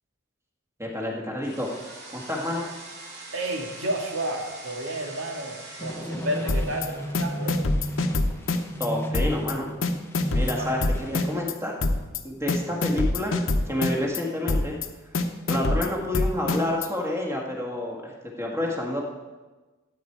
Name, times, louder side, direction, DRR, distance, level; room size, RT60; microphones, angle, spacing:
voice 1, 0.8-1.7 2.1-2.6 8.8-9.7 10.3-11.8 12.2-13.4 13.6-14.8 15.5-19.0, left 1 dB, 15° right, -1 dB, 1.7 m, -29 dB
sound 1, 1.4-9.5, right 2 dB, 55° right, 2.4 m, -45 dB
voice 2, 3.3-7.6 10.3-10.8, right 1 dB, 75° right, 1 dB, 1.8 m, -31 dB
sound 2, 5.8-11.5, equal, 10° left, 0.8 m, -34 dB
sound 3, 6.5-6.9 7.1-8.9 9.1-9.5 9.8-11.5 11.8-12.2 12.5-14.2 14.5-14.9 15.1-16.9, left 2 dB, 75° left, 0.8 m, -25 dB
13.0 x 8.7 x 4.7 m, 1.2 s
head